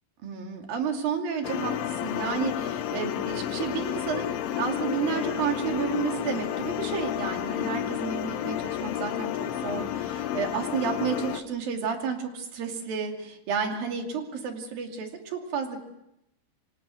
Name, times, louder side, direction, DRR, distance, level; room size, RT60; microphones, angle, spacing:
voice 1, 0.2-15.8, right 6 dB, 55° right, 3 dB, 4.0 m, -31 dB
sound 1, 1.4-11.4, left 11 dB, 80° left, 3.6 m, -31 dB
26.0 x 26.0 x 6.3 m, 0.84 s
omnidirectional pair, 5.6 m